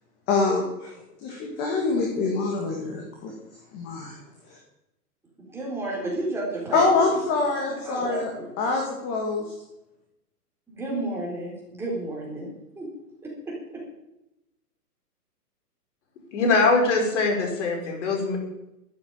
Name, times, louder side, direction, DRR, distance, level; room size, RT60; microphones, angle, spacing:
voice 1, 0.3-0.9 1.2-3.3 3.7-4.1 6.7-8.3 8.6-9.4, left 3 dB, 20° left, 1 dB, 2.1 m, -25 dB
voice 2, 5.4-7.2 7.5-8.5 10.7-12.5 12.8-12.9 13.2-13.8, right 2 dB, 5° right, -4 dB, 3.9 m, -32 dB
voice 3, 16.3-18.4, left 3 dB, 50° left, 2 dB, 5.4 m, -22 dB
13.0 x 9.5 x 9.0 m, 0.88 s
hypercardioid pair, 170°, 47 cm